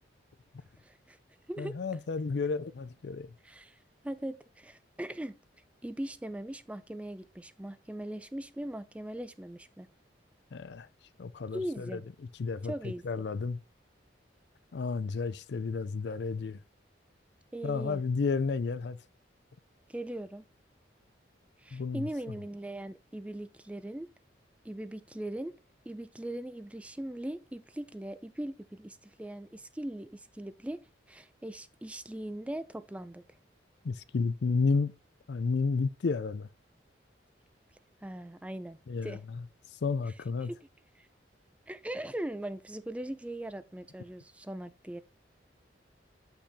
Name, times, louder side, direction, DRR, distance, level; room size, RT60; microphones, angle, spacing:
voice 1, 0.8-1.2 1.5-1.8 3.4-3.8 4.0-5.4 5.8-9.9 11.5-12.0 12.7-13.2 17.5-18.0 19.9-20.4 21.6-24.1 24.6-25.5 25.9-30.8 31.1-33.2 38.0-39.2 40.4-40.5 41.0-41.1 41.7-45.0, right 1 dB, 5° right, 0.3 m, -40 dB
voice 2, 1.6-3.3 10.5-10.9 11.2-12.0 12.4-13.6 14.7-16.6 17.6-19.0 21.7-22.1 33.8-34.9 35.3-36.5 38.9-39.4 39.8-40.5, left 4 dB, 65° left, 0.4 m, -31 dB
8.3 x 5.9 x 2.7 m
head